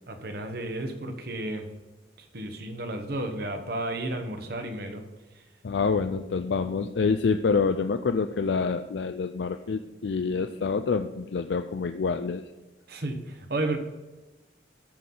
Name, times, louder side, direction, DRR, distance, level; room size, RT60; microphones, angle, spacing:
voice 1, 0.1-1.7 2.2-5.0 12.9-13.8, right 2 dB, 60° right, 6 dB, 1.2 m, -32 dB
voice 2, 5.6-12.4, left 5 dB, 75° left, 8 dB, 0.4 m, -27 dB
13.5 x 6.0 x 3.9 m, 1.2 s
head